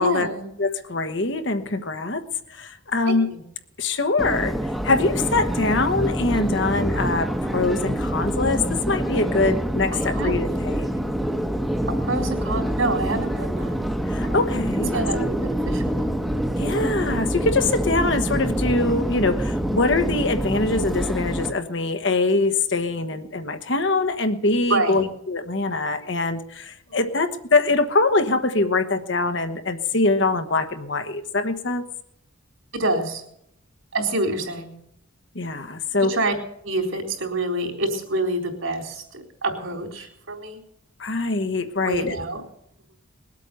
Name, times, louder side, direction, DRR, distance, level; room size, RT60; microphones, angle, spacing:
voice 1, 0.0-0.5 3.1-3.4 9.9-10.6 12.0-13.8 14.9-16.2 24.7-25.1 26.9-27.0 32.7-33.2 33.9-34.7 36.0-36.3 36.6-40.6 41.8-42.4, right 2 dB, 70° right, 1 dB, 4.0 m, -27 dB
voice 2, 0.6-2.2 2.5-3.3 3.8-4.5 4.8-10.9 14.1-15.3 16.6-31.8 35.3-36.1 41.0-42.2, left 3 dB, 55° left, 8 dB, 1.3 m, -23 dB
Subway metro underground, 4.2-21.5, right 1 dB, ahead, 1.1 m, -26 dB
21.0 x 8.4 x 6.8 m, 0.75 s
head